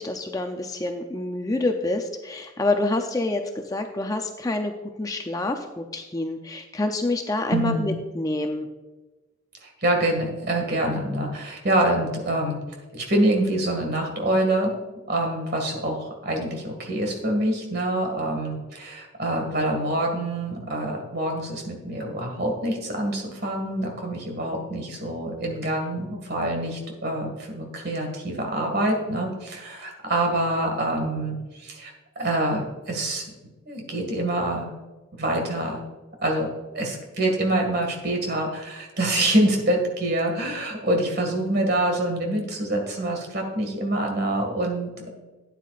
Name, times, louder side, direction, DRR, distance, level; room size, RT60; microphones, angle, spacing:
voice 1, 0.0-4.7 5.0-8.7, left 2 dB, 15° left, 5 dB, 0.5 m, -27 dB
voice 2, 7.5-7.9 9.6-12.6 12.9-14.7 15.1-33.2 33.7-34.7 35.2-35.8 36.2-36.5 36.7-45.1, right 1 dB, 50° right, 2 dB, 2.0 m, -26 dB
12.5 x 9.3 x 2.5 m, 1.1 s
head